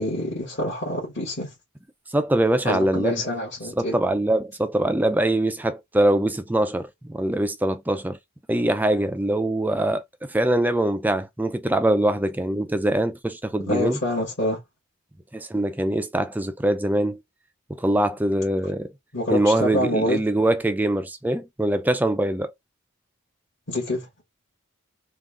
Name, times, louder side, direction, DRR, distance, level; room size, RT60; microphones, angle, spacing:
voice 1, 0.0-1.5 2.7-4.0 13.7-14.6 19.1-20.2 23.7-24.1, left 1 dB, 55° left, 1.8 m, -26 dB
voice 2, 2.1-3.2 3.8-8.2 8.5-14.0 15.3-17.2 17.7-18.9 19.3-22.5, right 1 dB, 10° right, 0.4 m, -23 dB
3.7 x 2.4 x 3.5 m
head